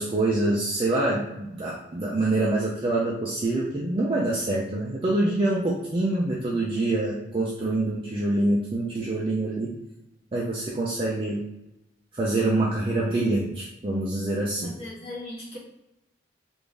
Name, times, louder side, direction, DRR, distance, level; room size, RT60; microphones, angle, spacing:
voice 1, 0.0-9.7 10.3-11.4 12.1-14.8, right 2 dB, 25° right, -4 dB, 0.4 m, -25 dB
voice 2, 14.6-15.6, left 1 dB, 30° left, -6 dB, 1.2 m, -38 dB
3.6 x 2.5 x 3.3 m, 0.91 s
head